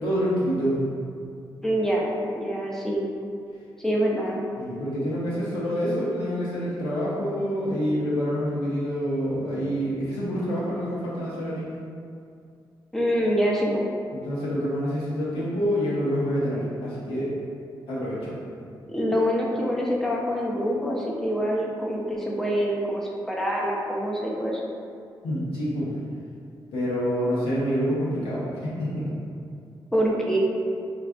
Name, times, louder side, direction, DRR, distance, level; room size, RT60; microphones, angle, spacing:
voice 1, 0.0-0.8 4.6-11.6 14.1-17.3 17.9-18.4 25.2-25.9 26.7-29.1, equal, 85° left, -8 dB, 0.8 m, -27 dB
voice 2, 1.6-3.0 3.8-4.4 12.9-13.9 18.9-24.6 29.9-30.4, equal, 5° left, -3 dB, 0.5 m, -25 dB
3.3 x 2.4 x 2.3 m, 2.4 s
supercardioid pair, 45°, 9 cm